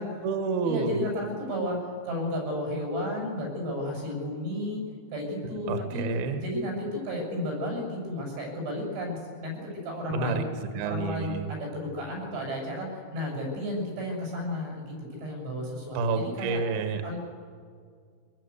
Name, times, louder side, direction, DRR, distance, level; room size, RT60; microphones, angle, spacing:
voice 1, 0.0-1.0 5.7-6.4 10.1-10.5 10.7-11.5 15.9-17.1, right 4 dB, 65° right, 7 dB, 2.9 m, -29 dB
voice 2, 0.6-4.8 5.1-6.1 6.4-9.5 9.8-14.9 15.2-16.6 17.0-17.2, left 1 dB, 90° right, -1 dB, 9.1 m, -33 dB
22.5 x 22.0 x 8.2 m, 2.1 s
omnidirectional pair, 5.3 m